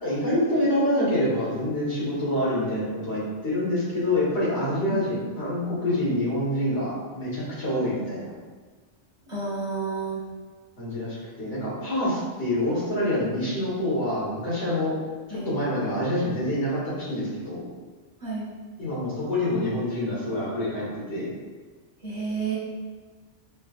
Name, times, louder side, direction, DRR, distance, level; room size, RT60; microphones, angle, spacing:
voice 1, 0.0-8.3 10.8-15.0 15.3-17.6 18.8-21.3, left 1 dB, 70° left, -8 dB, 1.8 m, -26 dB
voice 2, 9.3-10.2 15.3-15.5 18.2-18.5 22.0-22.6, right 4 dB, 40° right, -8 dB, 1.1 m, -30 dB
6.3 x 2.2 x 2.5 m, 1.4 s
omnidirectional pair, 1.2 m